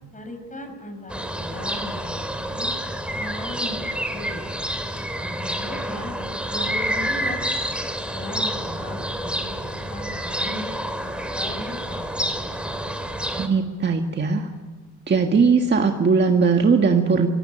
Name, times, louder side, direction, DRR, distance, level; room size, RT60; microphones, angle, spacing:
voice 1, 0.1-2.7 3.1-4.4 5.2-6.1 6.5-7.5 8.1-10.7 11.1-12.2, left 1 dB, 25° left, 6 dB, 6.5 m, -37 dB
sound 1, 1.1-13.5, equal, 5° right, 3.1 m, -28 dB
voice 2, 13.4-14.5 15.1-17.3, right 5 dB, 35° right, 4 dB, 1.7 m, -19 dB
24.5 x 17.0 x 10.0 m, 1.5 s
cardioid pair, 90°, 30 cm